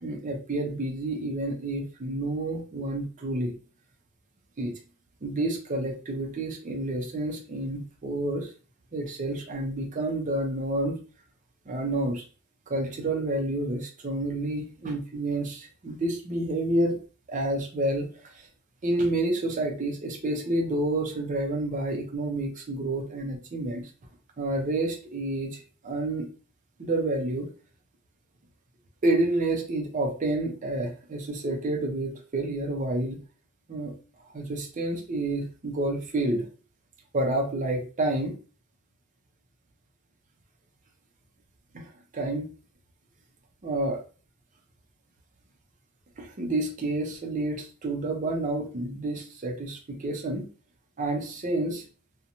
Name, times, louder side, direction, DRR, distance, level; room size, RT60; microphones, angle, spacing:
voice 1, 0.0-3.5 4.6-4.8 5.2-8.5 8.9-11.0 11.7-12.2 12.7-17.0 17.3-18.5 18.8-23.8 24.4-26.3 26.8-27.5 29.0-33.2 33.7-33.9 34.3-36.5 37.1-38.3 41.7-42.5 43.6-44.0 46.2-50.5 51.0-51.8, right 2 dB, 35° right, 1 dB, 0.5 m, -29 dB
2.8 x 2.1 x 2.5 m, 0.36 s
head